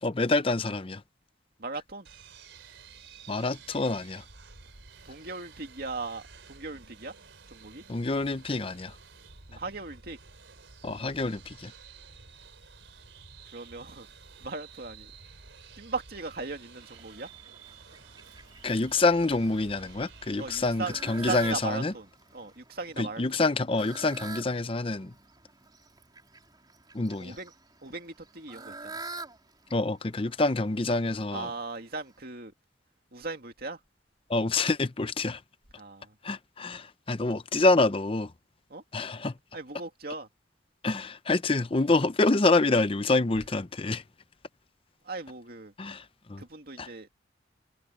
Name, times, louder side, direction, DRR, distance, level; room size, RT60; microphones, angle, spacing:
voice 1, 0.0-1.0 3.3-4.2 7.9-8.9 10.8-11.7 18.6-21.9 23.0-25.1 26.9-27.4 29.7-31.5 34.3-35.4 36.2-38.3 38.9-39.3 40.8-44.0 45.8-46.0 46.3-46.4 46.8-46.9, left 3 dB, 30° left, 0.6 m, -27 dB
voice 2, 1.6-2.1 5.0-7.1 7.5-7.8 9.5-10.2 13.5-14.1 14.4-15.1 15.8-17.3 20.4-23.4 27.2-27.5 27.8-29.0 31.3-32.5 33.1-33.8 35.8-36.2 38.7-38.8 39.5-40.3 45.0-45.7 46.4-47.1, right 3 dB, 55° right, 2.5 m, -38 dB
sound 1, 2.0-21.6, right 4 dB, 85° right, 3.8 m, -51 dB
Fowl, 16.8-32.2, right 3 dB, 25° right, 4.0 m, -47 dB
head